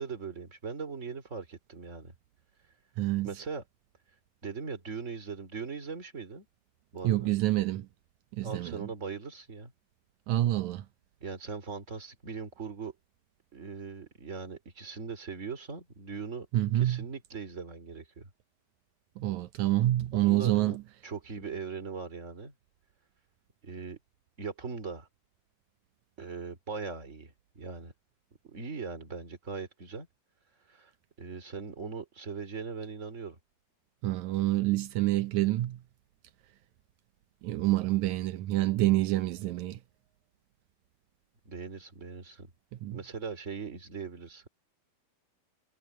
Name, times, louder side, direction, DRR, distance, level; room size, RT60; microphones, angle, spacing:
voice 1, 0.0-2.1 3.2-3.6 4.4-6.5 6.9-7.3 8.4-9.7 11.2-12.9 13.5-16.5 16.7-18.3 20.1-20.8 21.0-22.5 23.6-24.0 24.4-25.1 26.2-27.9 28.4-30.1 30.7-30.9 31.2-33.4 41.4-42.5 42.9-44.5, right 5 dB, 20° right, 3.1 m, -40 dB
voice 2, 3.0-3.3 7.0-7.9 8.3-8.9 10.3-10.8 16.5-17.1 19.2-20.8 34.0-35.8 37.4-39.8 42.8-43.0, right 15 dB, 85° right, 1.6 m, -27 dB
omnidirectional pair, 4.4 m